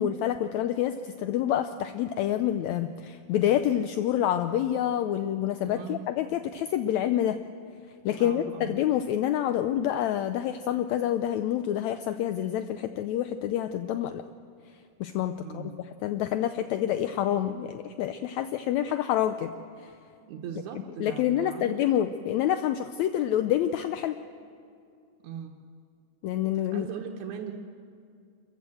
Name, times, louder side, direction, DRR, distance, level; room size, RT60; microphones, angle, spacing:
voice 1, 0.0-7.4 8.0-14.2 15.0-15.6 16.0-19.5 19.8-19.9 21.0-24.2 26.2-26.9, left 11 dB, 80° left, 10 dB, 1.6 m, -27 dB
voice 2, 8.2-8.8 15.4-15.8 20.2-21.8 25.2-25.5 26.7-27.5, right 8 dB, 70° right, 0 dB, 2.3 m, -39 dB
28.0 x 15.0 x 7.7 m, 2.4 s
omnidirectional pair, 3.9 m